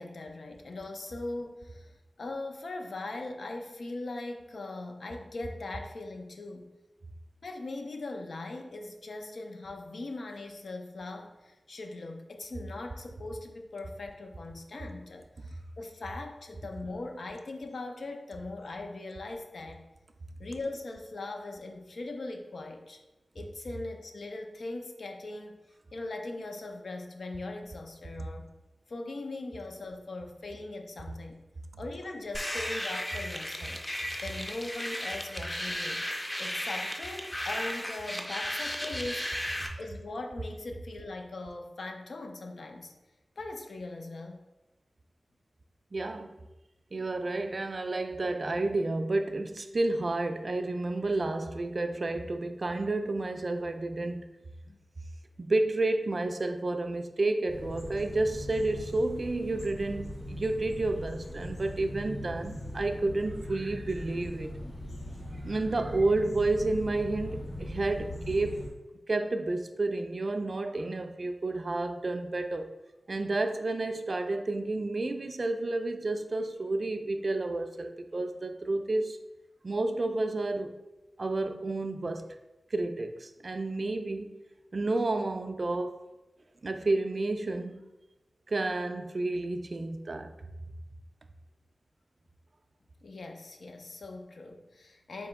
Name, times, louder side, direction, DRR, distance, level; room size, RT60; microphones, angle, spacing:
voice 1, 0.0-1.9 2.2-6.7 7.4-19.8 20.4-23.0 23.3-25.6 25.9-28.5 28.9-31.4 31.8-33.8 34.2-36.1 36.4-39.4 39.8-42.9 43.4-44.4 54.6-54.8 93.0-95.3, left 2 dB, 75° left, 4 dB, 0.5 m, -40 dB
sound 1, 32.3-39.7, left 1 dB, 15° left, 0.4 m, -35 dB
voice 2, 45.9-46.3 46.9-54.3 55.4-64.5 65.4-68.7 69.1-72.7 73.1-79.2 79.6-80.7 81.2-82.3 82.7-84.3 84.7-86.0 86.6-87.8 88.5-90.3, right 2 dB, 50° right, 7 dB, 0.3 m, -30 dB
sound 2, 57.5-68.7, left 1 dB, 50° left, 1.3 m, -40 dB
4.1 x 2.8 x 3.5 m, 1.0 s
wide cardioid pair, 95°, 0 cm